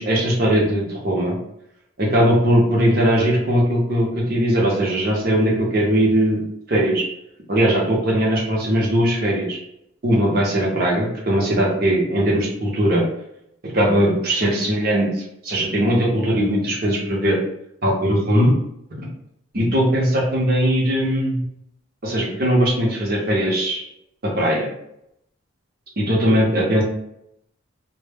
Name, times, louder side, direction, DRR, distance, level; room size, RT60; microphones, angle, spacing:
voice 1, 0.0-1.4 2.0-6.4 6.7-7.0 7.5-9.6 10.0-13.0 13.6-17.4 17.8-18.5 19.0-19.1 19.5-21.4 22.0-23.8 24.2-24.7 26.0-26.8, equal, 45° right, -2 dB, 0.7 m, -19 dB
2.1 x 2.1 x 3.3 m, 0.77 s
head